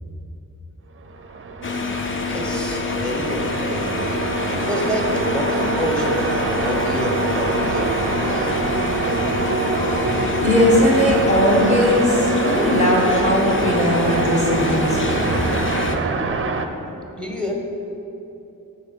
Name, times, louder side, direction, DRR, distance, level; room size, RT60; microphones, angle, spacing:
sound 1, 1.1-16.7, right 3 dB, 40° right, 0.5 m, -24 dB
sound 2, 1.6-16.0, left 5 dB, 35° left, 0.5 m, -27 dB
voice 1, 2.2-8.8 17.2-17.5, equal, 5° left, 1 dB, 1.0 m, -28 dB
voice 2, 10.0-15.3, left 1 dB, 20° left, -3 dB, 1.3 m, -19 dB
8.2 x 4.7 x 5.2 m, 2.9 s
wide cardioid pair, 130°, 35 cm